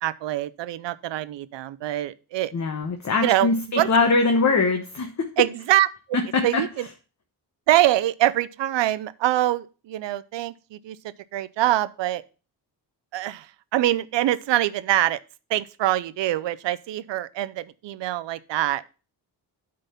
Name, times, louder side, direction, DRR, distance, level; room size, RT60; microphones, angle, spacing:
voice 1, 0.0-2.5 3.2-3.5 3.8-3.9 5.4-5.9 6.4-6.9 7.7-11.0 11.3-12.2 13.1-13.5 13.7-15.2 15.5-19.0, right 14 dB, 85° right, 0.6 m, -24 dB
voice 2, 2.5-5.3 6.1-6.6, left 3 dB, 40° left, 1.1 m, -22 dB
8.9 x 3.9 x 5.5 m
cardioid pair, 90°, 42 cm